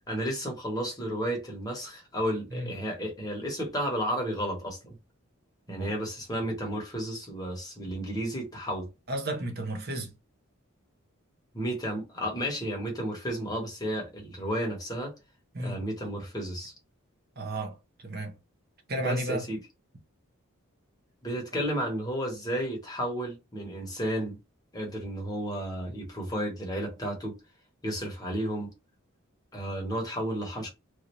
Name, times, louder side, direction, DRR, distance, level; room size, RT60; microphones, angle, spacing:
voice 1, 0.1-4.9 5.7-8.9 11.5-15.1 15.6-16.7 19.0-19.6 21.2-24.4 24.7-27.3 27.8-28.7 29.5-30.7, equal, 20° left, 1.2 m, -32 dB
voice 2, 9.1-10.1 15.5-15.8 17.4-17.8 18.0-18.3 18.9-19.4, right 1 dB, 45° right, 0.8 m, -32 dB
3.1 x 2.6 x 3.0 m
head